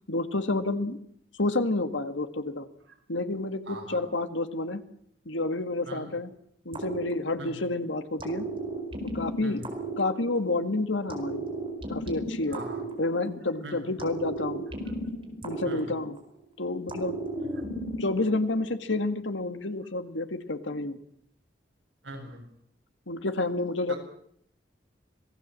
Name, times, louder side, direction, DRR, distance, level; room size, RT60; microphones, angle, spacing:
voice 1, 0.1-1.0 1.4-2.7 3.1-4.8 5.3-6.3 6.7-8.5 9.1-9.6 10.0-11.5 11.9-12.6 13.0-14.6 15.4-16.2 16.6-17.2 18.0-21.0 23.1-23.9, left 2 dB, 85° left, 9 dB, 2.0 m, -29 dB
voice 2, 3.7-4.0 5.8-6.2 7.4-7.6 9.4-9.7 12.5-12.9 13.6-13.9 15.6-16.0 17.4-17.5 22.0-22.4 23.9-24.0, right 1 dB, 80° right, 2 dB, 7.3 m, -41 dB
sound 1, 6.7-7.7 8.2-10.6 11.1-13.5 14.0-16.4 16.9-18.4, right 2 dB, 30° right, 4.6 m, -35 dB
26.5 x 18.5 x 7.7 m, 0.68 s
head